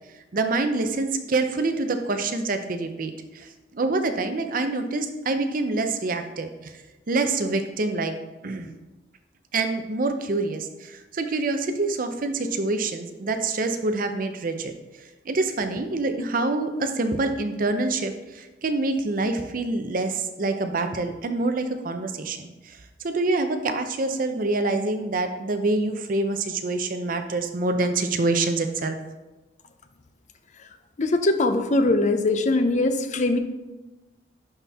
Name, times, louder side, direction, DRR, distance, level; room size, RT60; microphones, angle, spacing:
voice 1, 0.3-6.7 7.1-8.1 8.4-8.7 9.5-14.7 15.3-22.8 23.0-29.0, right 3 dB, 50° right, 7 dB, 0.7 m, -26 dB
voice 2, 31.0-33.4, left 2 dB, 45° left, 8 dB, 0.6 m, -22 dB
11.0 x 4.3 x 3.6 m, 1.1 s
head